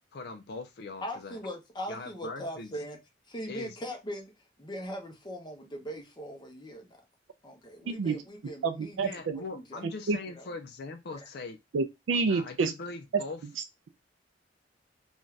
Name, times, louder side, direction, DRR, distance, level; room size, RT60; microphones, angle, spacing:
voice 1, 0.1-1.4 1.9-2.8 3.5-3.8 9.0-11.6 12.3-13.4, left 3 dB, 60° left, 0.4 m, -41 dB
voice 2, 1.0-3.0 3.3-4.3 4.6-7.0 7.4-9.8 10.3-10.5 11.1-11.3, equal, 25° left, 0.8 m, -40 dB
voice 3, 7.9-8.2 8.6-9.4 10.1-10.2 11.7-12.7, right 4 dB, 85° right, 0.4 m, -28 dB
2.6 x 2.3 x 3.2 m
head